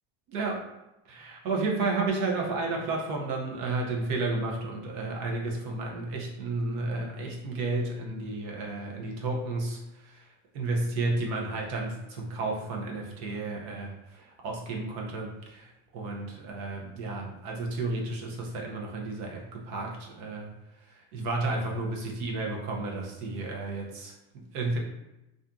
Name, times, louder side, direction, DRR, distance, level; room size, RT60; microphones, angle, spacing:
voice 1, 0.3-0.6 1.1-10.2 10.5-20.5 21.1-24.8, right 3 dB, 55° right, 0 dB, 0.7 m, -32 dB
2.5 x 2.5 x 2.3 m, 0.94 s
supercardioid pair, 145°, 33 cm